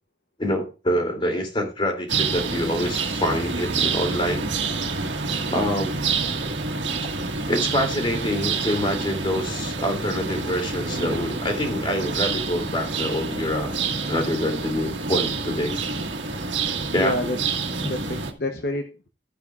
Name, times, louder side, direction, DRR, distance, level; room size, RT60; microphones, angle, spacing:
voice 1, 0.4-4.5 5.5-6.2 7.5-13.7 14.0-15.8 16.9-17.1, equal, 25° left, 3 dB, 2.9 m, -26 dB
sound 1, 2.1-18.3, right 4 dB, 90° right, 1.6 m, -27 dB
voice 2, 17.0-19.1, left 1 dB, 55° left, 5 dB, 0.9 m, -29 dB
13.5 x 9.4 x 2.4 m, 0.31 s
head